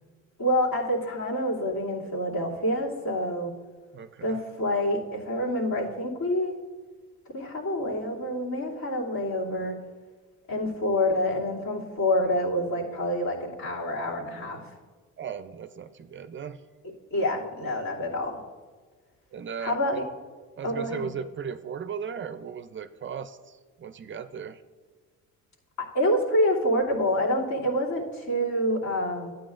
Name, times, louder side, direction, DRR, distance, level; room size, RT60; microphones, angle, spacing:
voice 1, 0.4-3.5 4.2-6.6 7.3-9.7 10.5-14.6 17.1-18.4 19.6-20.0 20.6-21.1 25.8-29.3, left 1 dB, 65° left, -6 dB, 2.8 m, -27 dB
voice 2, 3.9-4.4 15.2-16.6 19.3-19.8 20.6-24.6, right 7 dB, 40° right, 11 dB, 0.5 m, -37 dB
12.5 x 9.1 x 2.5 m, 1.5 s
cardioid pair, 90°, 30 cm